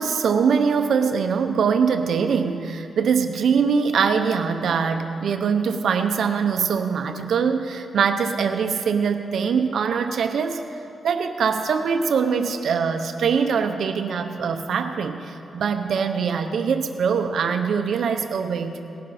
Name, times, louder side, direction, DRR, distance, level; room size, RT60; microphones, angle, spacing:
voice 1, 0.0-10.6 11.0-18.8, right 6 dB, 75° right, 7 dB, 0.8 m, -23 dB
19.0 x 11.5 x 4.3 m, 2.7 s
wide cardioid pair, 115°, 0 cm